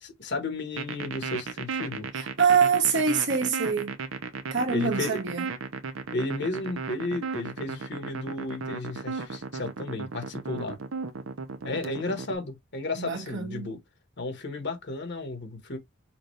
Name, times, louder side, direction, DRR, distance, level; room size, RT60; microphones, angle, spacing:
voice 1, 0.0-2.1 4.7-5.2 6.1-10.8 11.6-13.8 14.2-15.8, left 2 dB, 60° left, 1.5 m, -33 dB
sound 1, 0.8-12.3, right 4 dB, 75° right, 0.8 m, -35 dB
voice 2, 2.2-4.0 4.5-5.5 13.0-13.7, right 6 dB, 60° right, 1.6 m, -25 dB
5.9 x 2.6 x 3.2 m
head